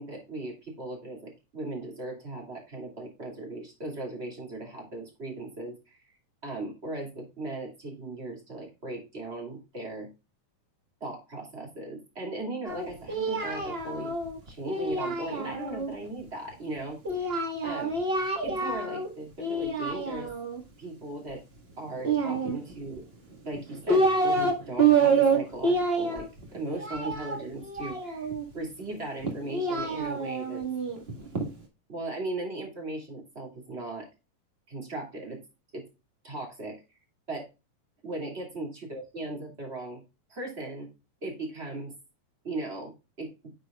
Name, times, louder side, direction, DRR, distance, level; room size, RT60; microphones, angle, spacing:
voice 1, 0.0-6.0 6.4-10.1 11.0-14.1 14.5-17.0 17.6-17.9 18.4-20.3 20.8-21.4 21.8-23.0 23.4-30.6 31.9-34.1 34.7-35.4 35.7-35.8 36.2-36.8 37.3-37.4 38.0-40.0 40.3-40.9 41.2-41.9 42.4-42.9 43.2-43.3, right 2 dB, 20° right, 0 dB, 2.5 m, -38 dB
Singing, 12.6-15.9 17.0-19.1 19.4-20.6 22.0-23.0 23.5-24.5 24.8-28.4 29.2-31.5, right 3 dB, 40° right, 0.8 m, -27 dB
9.3 x 6.3 x 2.4 m, 0.27 s
omnidirectional pair, 4.0 m